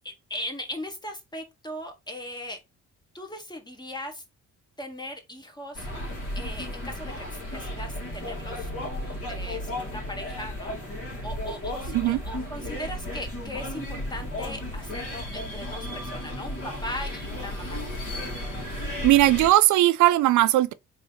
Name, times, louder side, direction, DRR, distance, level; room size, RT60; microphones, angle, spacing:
voice 1, 0.0-2.6 3.1-4.2 4.8-5.9 6.3-17.8, left 1 dB, 15° left, 1.3 m, -38 dB
sound 1, 5.7-19.5, left 1 dB, 50° left, 2.2 m, -34 dB
voice 2, 19.0-20.7, right 15 dB, 75° right, 0.4 m, -18 dB
3.9 x 2.8 x 3.9 m
cardioid pair, 90°, 30 cm